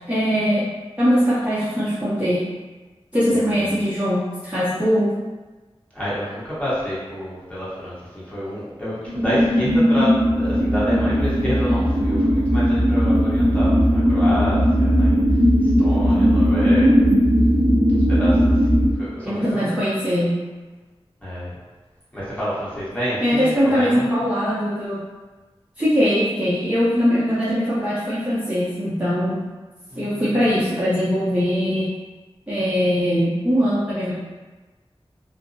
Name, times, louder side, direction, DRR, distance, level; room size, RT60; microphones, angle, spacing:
voice 1, 0.1-0.6 1.0-2.4 3.1-5.1 19.2-20.3 23.2-25.0 25.8-29.4 30.0-31.9 32.5-34.1, equal, 10° right, -12 dB, 0.7 m, -21 dB
voice 2, 5.9-15.1 15.8-17.1 18.1-19.8 21.2-21.6 22.1-24.1 29.9-30.3, equal, 15° left, -10 dB, 1.1 m, -28 dB
sound 1, 9.1-18.9, equal, 50° right, 0.4 m, -18 dB
2.6 x 2.0 x 2.6 m, 1.2 s
wide cardioid pair, 50°, 11 cm